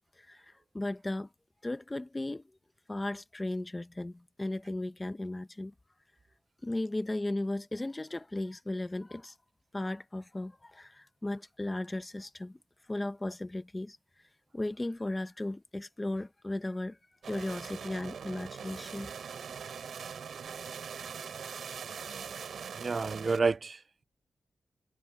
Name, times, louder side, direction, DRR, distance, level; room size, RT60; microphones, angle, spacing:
voice 1, 0.2-1.3 1.6-2.4 2.9-5.7 6.6-9.3 9.7-12.6 12.9-14.0 14.5-17.0 17.2-19.1, left 2 dB, 15° left, 0.9 m, -36 dB
sound 1, 17.2-23.4, right 7 dB, 75° right, 3.6 m, -42 dB
voice 2, 22.8-24.0, right 4 dB, 35° right, 0.4 m, -30 dB
wide cardioid pair, 155°, 0 cm